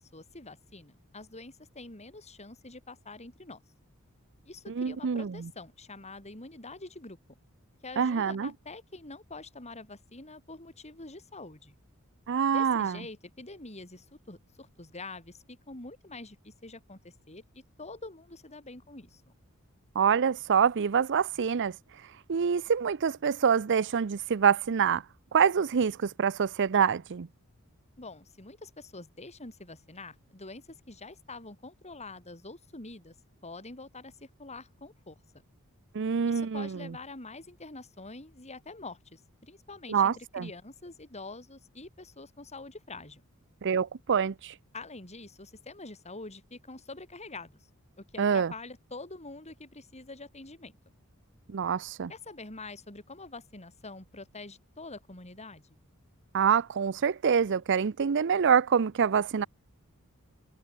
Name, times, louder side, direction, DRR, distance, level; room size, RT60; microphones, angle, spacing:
voice 1, 0.1-3.6 4.5-7.2 7.8-11.7 12.5-19.2 28.0-33.1 33.4-35.2 36.2-43.2 44.7-47.6 48.0-50.7 52.1-55.8, left 3 dB, 30° left, 5.4 m, -45 dB
voice 2, 4.7-5.5 8.0-8.5 12.3-13.0 20.0-21.8 22.3-25.0 25.3-27.3 35.9-36.9 39.9-40.5 43.6-44.5 48.2-48.5 51.5-52.1 56.3-59.5, right 7 dB, 55° right, 0.5 m, -26 dB
head